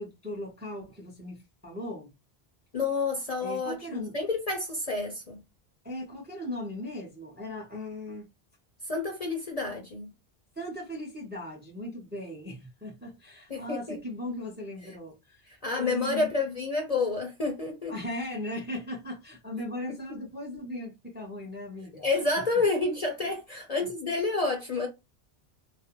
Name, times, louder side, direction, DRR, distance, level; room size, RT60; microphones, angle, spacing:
voice 1, 0.0-2.1 3.4-4.2 5.8-8.3 10.6-16.3 17.9-22.0 23.5-23.6, left 1 dB, 10° right, 0.6 m, -38 dB
voice 2, 2.7-5.4 8.8-10.1 13.5-14.0 15.5-17.9 22.0-24.9, left 3 dB, 45° left, 0.6 m, -29 dB
2.4 x 2.1 x 2.9 m
omnidirectional pair, 1.1 m